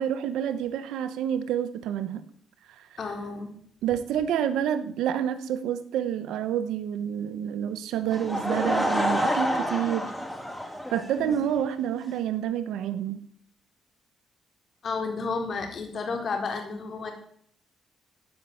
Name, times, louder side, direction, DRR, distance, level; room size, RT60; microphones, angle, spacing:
voice 1, 0.0-2.2 2.7-2.9 3.8-10.1 10.9-13.2, right 9 dB, 85° right, 11 dB, 1.2 m, -28 dB
voice 2, 3.0-3.5 11.2-11.4 14.8-17.1, left 4 dB, 50° left, 3 dB, 3.9 m, -31 dB
Laughter / Crowd, 8.1-11.6, equal, 5° left, 3.9 m, -28 dB
15.0 x 5.7 x 9.5 m, 0.64 s
cardioid pair, 90°, 0 cm